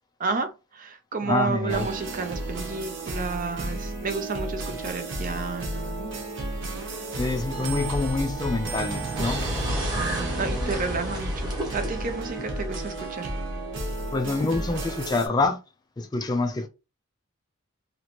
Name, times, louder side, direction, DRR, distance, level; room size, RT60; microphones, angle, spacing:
voice 1, 0.2-6.1 9.8-13.3, right 4 dB, 40° right, 0.5 m, -31 dB
voice 2, 1.2-1.9 7.2-9.5 14.1-15.6 16.0-16.7, left 3 dB, 20° left, 0.3 m, -26 dB
sound 1, 1.7-15.3, right 2 dB, 55° right, 0.9 m, -32 dB
sound 2, 9.1-13.0, equal, 20° right, 1.0 m, -31 dB
3.0 x 2.5 x 2.9 m
head